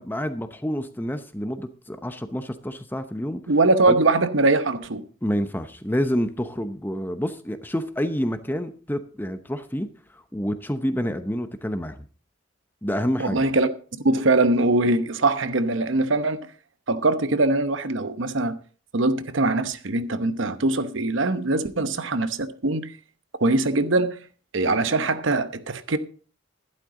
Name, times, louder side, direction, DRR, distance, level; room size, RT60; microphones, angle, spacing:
voice 1, 0.0-3.4 3.9-4.0 5.2-9.9 10.3-12.1 12.8-13.4, equal, 10° left, 0.7 m, -28 dB
voice 2, 3.5-5.0 13.2-13.7 14.0-16.4 16.9-18.6 18.9-22.9 23.4-24.2 24.5-26.0, right 2 dB, 65° right, 0.9 m, -22 dB
12.5 x 12.0 x 3.8 m
head